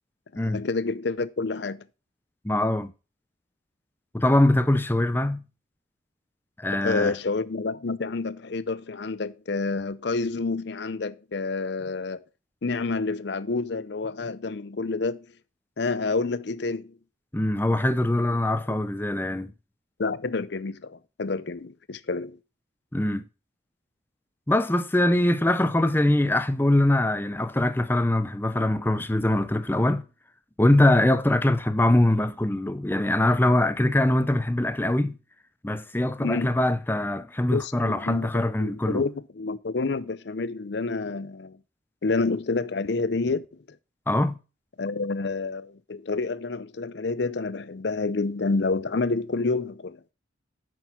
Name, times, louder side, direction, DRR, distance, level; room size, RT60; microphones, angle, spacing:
voice 1, 0.3-1.8 6.7-12.2 12.6-15.3 15.8-17.0 20.0-22.4 36.2-36.5 37.5-41.6 42.0-43.8 44.8-50.0, left 3 dB, 60° left, 0.6 m, -29 dB
voice 2, 2.4-2.9 4.1-5.4 6.6-7.1 17.3-19.5 22.9-23.2 24.5-30.0 30.6-35.2 35.6-39.0 44.1-44.4, left 1 dB, 10° left, 0.6 m, -23 dB
9.1 x 6.2 x 5.8 m
head